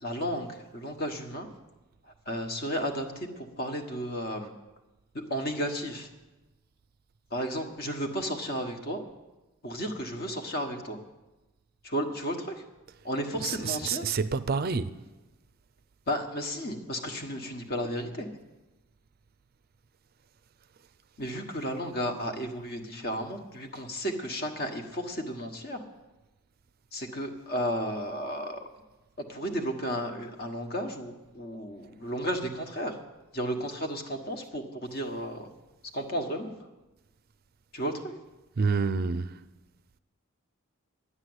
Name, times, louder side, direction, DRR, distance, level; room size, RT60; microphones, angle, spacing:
voice 1, 0.0-1.5 2.3-4.5 5.1-6.1 7.3-9.0 9.6-11.0 11.8-12.6 13.0-14.1 16.1-18.3 21.2-25.8 26.9-28.6 29.3-33.0 33.3-35.5 35.9-36.5 37.7-38.1, equal, 45° left, 1.4 m, -33 dB
voice 2, 13.4-14.9 38.6-39.3, right 5 dB, 45° right, 0.4 m, -28 dB
11.5 x 9.9 x 8.0 m
head